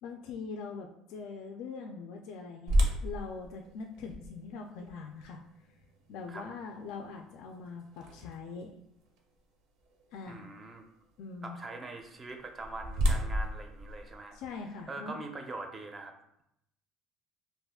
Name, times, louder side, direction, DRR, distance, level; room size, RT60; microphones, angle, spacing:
voice 1, 0.0-5.4 6.1-8.7 10.1-10.5 11.2-11.6 14.3-15.2, left 4 dB, 70° left, 3 dB, 0.3 m, -42 dB
sound 1, 2.7-8.6 9.2-9.3 9.9-10.1 12.2-14.8, equal, 70° right, 0.6 m, -33 dB
voice 2, 10.3-10.8 11.4-14.4 14.9-16.1, right 3 dB, 20° right, 4 dB, 0.4 m, -43 dB
2.4 x 2.3 x 3.5 m, 0.78 s
cardioid pair, 145°, 0 cm